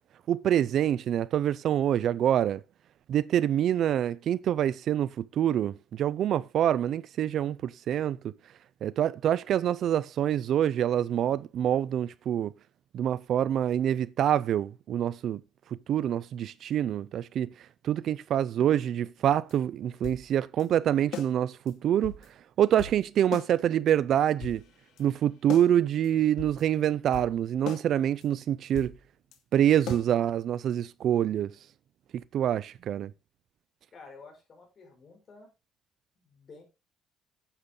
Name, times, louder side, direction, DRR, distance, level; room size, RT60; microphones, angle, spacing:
voice 1, 0.3-2.6 3.1-8.3 8.8-12.5 12.9-15.4 15.9-17.5 17.8-22.1 22.6-24.6 25.0-28.9 29.5-31.5 32.3-33.1, right 10 dB, 50° right, 0.4 m, -26 dB
sound 1, 19.5-19.6 19.9-20.2 20.6-20.7 21.1-21.3 21.7-21.8 22.0-22.3 22.8-23.0 23.3-23.5 23.9-24.0 24.4-25.0 25.5-25.7 26.0-26.1 26.4-26.6 27.1-27.3 27.7-27.9 28.2-28.3 28.6-29.0 29.3-29.4 29.9-30.1, left 8 dB, 65° left, 2.2 m, -39 dB
voice 2, 33.9-35.5 36.2-36.6, left 4 dB, 35° left, 5.4 m, -51 dB
9.9 x 8.5 x 3.8 m
cardioid pair, 145°, 0 cm